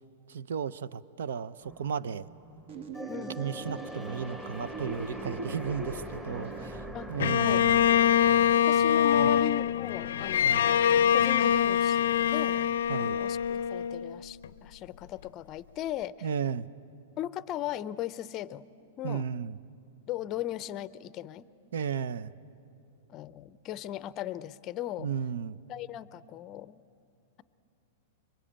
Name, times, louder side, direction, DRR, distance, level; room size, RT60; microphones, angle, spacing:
voice 1, 0.3-2.3 3.4-7.8 9.2-9.4 10.4-10.7 12.9-13.2 16.2-16.7 19.0-19.6 21.7-22.3 25.0-25.6, right 7 dB, 85° right, 17 dB, 0.7 m, -34 dB
sound 1, 1.6-8.6, right 1 dB, 10° right, 1.2 m, -42 dB
sound 2, 2.7-6.7, right 2 dB, 65° right, 2.0 m, -42 dB
voice 2, 3.1-3.4 6.9-7.7 8.6-10.8 11.1-12.6 13.0-16.3 17.2-18.7 19.0-19.3 20.1-21.5 23.1-25.1 25.7-26.8, left 12 dB, 30° left, 17 dB, 0.5 m, -38 dB
Bowed string instrument, 7.2-14.5, left 9 dB, 80° left, 0.5 m, -24 dB
25.0 x 23.0 x 8.8 m, 2.8 s
supercardioid pair, 150°, 0 cm